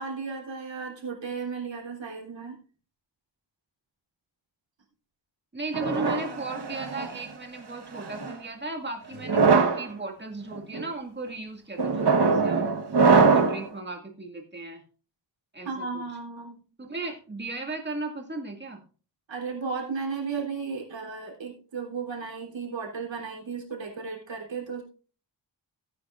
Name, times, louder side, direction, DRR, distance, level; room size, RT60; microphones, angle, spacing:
voice 1, 0.0-2.6 15.6-16.6 19.3-24.8, right 5 dB, 75° right, 0 dB, 3.6 m, -34 dB
voice 2, 5.5-12.7 13.1-14.8 15.5-16.0 16.8-18.8, right 3 dB, 25° right, 2 dB, 2.2 m, -36 dB
sound 1, 5.7-7.2 7.9-8.3 9.2-9.8 10.5-10.8 11.8-13.7, right 4 dB, 60° right, 1.3 m, -22 dB
17.0 x 9.2 x 2.5 m, 0.38 s
wide cardioid pair, 140°, 45 cm